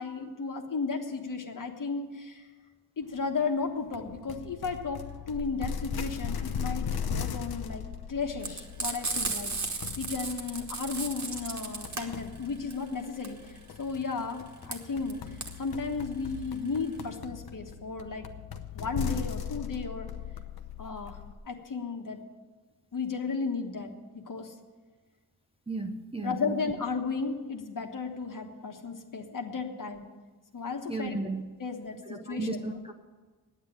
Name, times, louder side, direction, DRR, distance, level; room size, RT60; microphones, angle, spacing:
voice 1, 0.0-2.5 3.0-5.0 5.3-15.2 15.6-18.3 18.7-20.1 20.8-21.2 21.4-22.2 22.9-24.5 26.2-30.1 30.5-31.2 31.6-32.5, left 4 dB, 55° left, 3 dB, 1.4 m, -34 dB
sound 1, 3.9-21.3, left 7 dB, 75° left, 0.9 m, -38 dB
Frying (food), 8.4-17.2, right 4 dB, 50° right, 1.5 m, -35 dB
voice 2, 25.7-26.6 30.9-31.4 32.0-32.9, right 2 dB, 15° right, 3 dB, 0.7 m, -34 dB
9.8 x 8.8 x 9.9 m, 1.3 s
wide cardioid pair, 130°, 37 cm